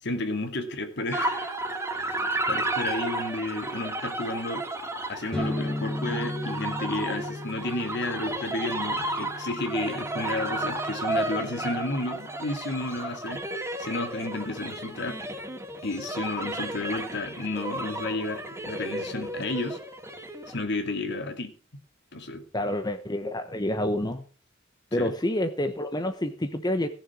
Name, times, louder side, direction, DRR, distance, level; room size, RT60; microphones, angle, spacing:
voice 1, 0.0-1.5 1.9-4.7 5.1-15.2 15.8-19.8 20.5-21.5 22.1-22.4 25.0-25.1, left 2 dB, 60° left, 2.4 m, -32 dB
sound 1, 1.1-20.6, right 2 dB, 15° right, 3.0 m, -33 dB
sound 2, 5.3-12.9, left 1 dB, 5° left, 1.7 m, -37 dB
voice 2, 22.5-24.2 24.9-26.9, left 1 dB, 20° left, 1.0 m, -28 dB
17.0 x 7.3 x 6.1 m
head